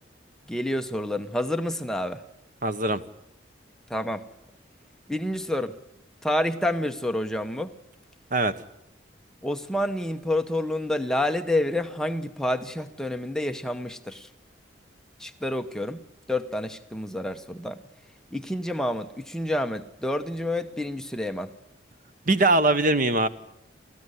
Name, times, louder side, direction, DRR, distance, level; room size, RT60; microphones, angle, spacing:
voice 1, 0.5-2.2 3.9-4.2 5.1-5.8 6.2-7.7 9.4-14.3 15.2-16.0 16.3-17.8 18.3-21.5, left 1 dB, 5° left, 6 dB, 0.9 m, -28 dB
voice 2, 2.6-3.0 8.3-8.5 22.3-23.3, right 2 dB, 45° right, 11 dB, 1.1 m, -21 dB
30.0 x 14.0 x 9.9 m, 0.83 s
head